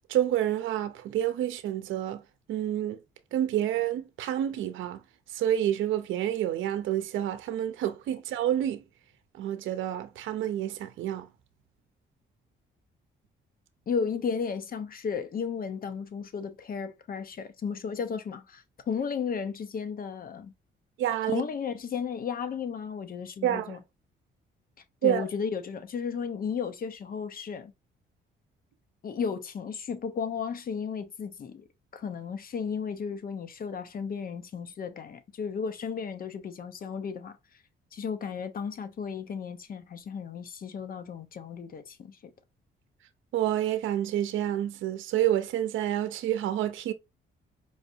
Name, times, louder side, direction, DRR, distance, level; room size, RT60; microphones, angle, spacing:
voice 1, 0.1-2.2 2.5-3.0 3.3-5.0 5.3-8.8 9.4-11.3 21.0-21.4 23.4-23.8 25.0-25.3 43.3-46.9, right 11 dB, 80° right, 0.6 m, -28 dB
voice 2, 13.9-20.5 21.2-23.8 25.0-27.7 29.0-31.6 31.9-37.4 37.9-42.3, left 6 dB, 45° left, 0.8 m, -34 dB
4.8 x 2.6 x 2.7 m
cardioid pair, 90°, 20 cm